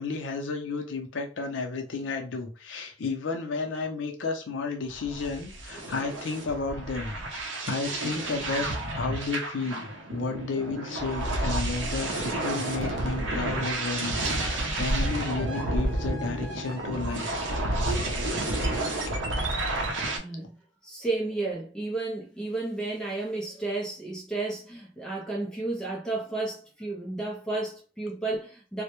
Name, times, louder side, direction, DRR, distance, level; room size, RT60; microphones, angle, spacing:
voice 1, 0.0-8.7 8.9-17.3 18.5-18.8, left 3 dB, 75° left, 0.5 m, -32 dB
sound 1, 4.9-20.2, right 1 dB, 80° right, 0.6 m, -30 dB
voice 2, 19.7-20.5 20.8-28.8, right 2 dB, 5° left, 0.4 m, -32 dB
2.1 x 2.1 x 2.8 m
head